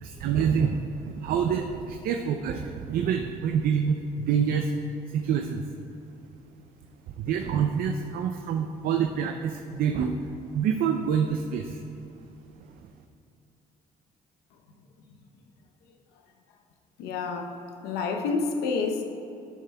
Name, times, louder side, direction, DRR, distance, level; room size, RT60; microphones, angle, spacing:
voice 1, 0.0-4.7 5.1-5.6 7.2-10.2 10.5-11.8, right 7 dB, 65° right, 5 dB, 0.5 m, -27 dB
voice 2, 17.0-19.0, left 4 dB, 80° left, 4 dB, 0.8 m, -29 dB
12.0 x 6.7 x 2.2 m, 2.8 s
supercardioid pair, 70°, 17 cm